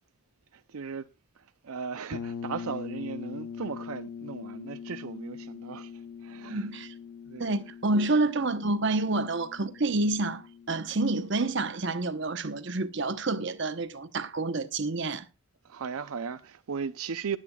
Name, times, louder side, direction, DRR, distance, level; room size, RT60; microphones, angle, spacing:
voice 1, 0.5-1.1 1.4-6.7 7.3-7.5 8.0-8.1 15.6-17.4, right 6 dB, 80° right, 0.5 m, -37 dB
sound 1, 2.1-11.8, left 6 dB, 90° left, 0.7 m, -42 dB
voice 2, 6.5-6.9 7.4-10.4 10.7-15.2, right 2 dB, 55° right, 0.9 m, -28 dB
20.5 x 8.7 x 2.3 m
head